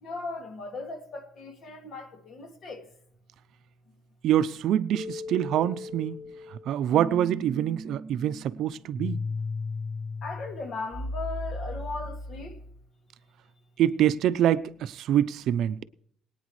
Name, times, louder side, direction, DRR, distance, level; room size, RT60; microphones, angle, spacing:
voice 1, 0.0-2.8 10.2-12.5, left 3 dB, 55° left, 2.3 m, -37 dB
voice 2, 4.2-6.2 6.7-9.2 13.8-15.8, right 11 dB, 70° right, 0.6 m, -25 dB
sound 1, 4.9-12.8, left 2 dB, 25° left, 2.6 m, -36 dB
22.5 x 9.3 x 3.2 m
cardioid pair, 135°, 0 cm